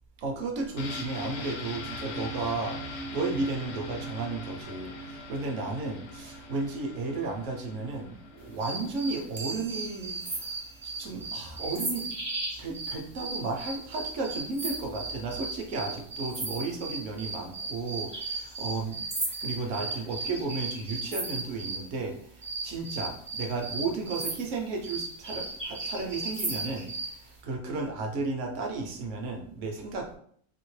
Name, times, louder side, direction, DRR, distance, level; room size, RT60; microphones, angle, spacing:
voice 1, 0.2-10.5 10.8-12.1 12.6-30.2, right 3 dB, 65° right, 2 dB, 0.9 m, -34 dB
sound 1, 0.8-10.4 10.7-10.8, left 1 dB, 65° left, 0.7 m, -41 dB
sound 2, 8.6-21.9 22.4-27.2, right 3 dB, 35° right, 0.4 m, -36 dB
sound 3, 9.4-12.2, right 6 dB, 85° right, 1.1 m, -49 dB
2.8 x 2.8 x 3.1 m, 0.62 s
omnidirectional pair, 1.5 m